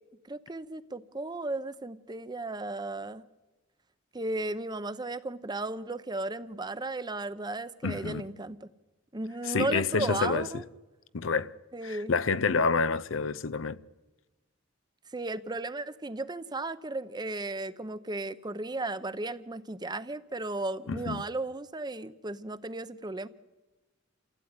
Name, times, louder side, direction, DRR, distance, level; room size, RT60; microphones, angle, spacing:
voice 1, 0.3-3.2 4.1-8.7 9.1-10.6 11.7-12.1 15.1-23.3, right 2 dB, 20° right, 0.8 m, -35 dB
voice 2, 7.8-8.2 9.5-10.6 11.1-11.5 11.8-13.8 20.9-21.2, left 4 dB, 85° left, 0.7 m, -28 dB
27.5 x 16.0 x 9.7 m
head